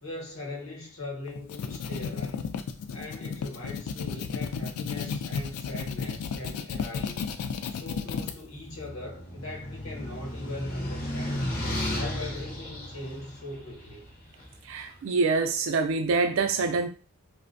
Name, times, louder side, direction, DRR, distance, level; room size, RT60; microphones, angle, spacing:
voice 1, 0.0-2.5 2.9-7.4 7.7-11.6 11.9-14.1, left 2 dB, 70° left, 0.9 m, -40 dB
sound 1, 1.3-8.3, left 6 dB, 90° left, 0.3 m, -33 dB
sound 2, 8.3-14.6, left 1 dB, 40° left, 0.5 m, -34 dB
voice 2, 14.6-16.9, right 4 dB, 60° right, 0.3 m, -25 dB
2.5 x 2.1 x 2.5 m
head